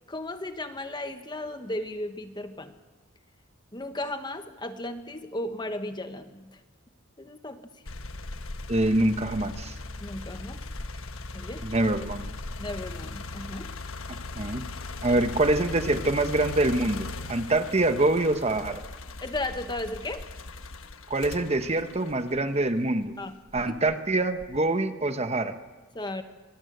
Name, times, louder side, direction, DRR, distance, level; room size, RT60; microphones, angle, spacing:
voice 1, 0.1-2.7 3.7-6.6 7.2-7.6 10.0-10.6 11.3-11.6 12.6-13.7 15.1-15.2 19.2-20.3 23.2-23.6 25.9-26.2, left 1 dB, 20° left, 8 dB, 1.2 m, -35 dB
sound 1, 7.9-22.9 23.5-24.7, left 3 dB, 80° left, 1.2 m, -39 dB
voice 2, 8.7-9.7 11.6-12.3 14.1-14.6 15.0-18.8 21.1-23.1 23.5-25.5, right 2 dB, 30° right, 8 dB, 1.1 m, -25 dB
25.0 x 19.5 x 8.0 m, 1.3 s
head